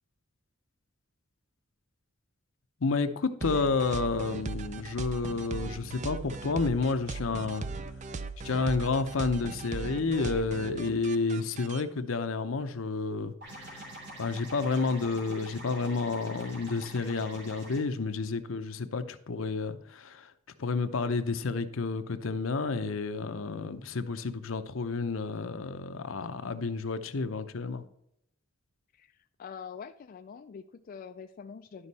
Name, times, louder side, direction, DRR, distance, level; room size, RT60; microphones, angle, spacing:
voice 1, 2.8-7.7 8.4-13.3 13.6-13.9 14.2-20.3 20.6-27.8, left 4 dB, 75° left, 10 dB, 0.7 m, -30 dB
sound 1, 3.4-11.8, right 4 dB, 35° right, 0.4 m, -38 dB
sound 2, 13.4-17.8, right 1 dB, 55° right, 3.2 m, -46 dB
voice 2, 29.4-31.9, left 6 dB, 45° left, 7 dB, 0.3 m, -44 dB
11.5 x 5.3 x 4.1 m, 0.76 s
head